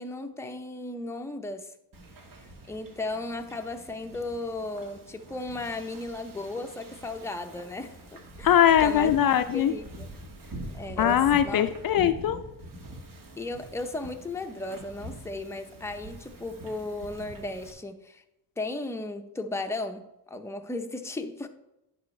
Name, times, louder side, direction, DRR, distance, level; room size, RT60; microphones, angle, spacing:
voice 1, 0.0-1.7 2.7-9.1 9.5-10.1 10.7-11.6 13.4-18.2 18.6-21.5, left 2 dB, 5° left, 5 dB, 0.6 m, -35 dB
Wind / Ocean, 1.9-17.7, right 1 dB, 55° right, 1.5 m, -44 dB
voice 2, 8.4-9.7 11.0-12.4, left 10 dB, 55° left, 9 dB, 0.5 m, -21 dB
10.5 x 5.5 x 3.2 m, 0.89 s
cardioid pair, 90°, 40 cm